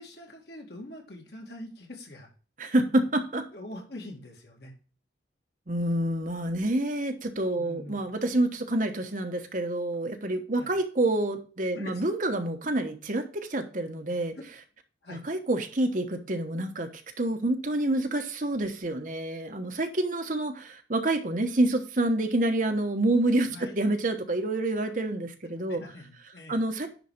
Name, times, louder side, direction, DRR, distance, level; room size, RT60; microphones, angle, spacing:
voice 1, 0.0-2.3 3.5-4.7 7.6-8.1 10.5-10.8 11.7-12.1 14.4-14.5 15.0-15.3 23.5-23.7 25.7-26.6, left 1 dB, 60° left, 1 dB, 2.4 m, -44 dB
voice 2, 2.6-3.5 5.7-14.3 15.1-16.9 17.2-25.8 26.5-26.9, right 1 dB, 45° right, 6 dB, 1.1 m, -27 dB
10.0 x 4.2 x 5.0 m, 0.38 s
head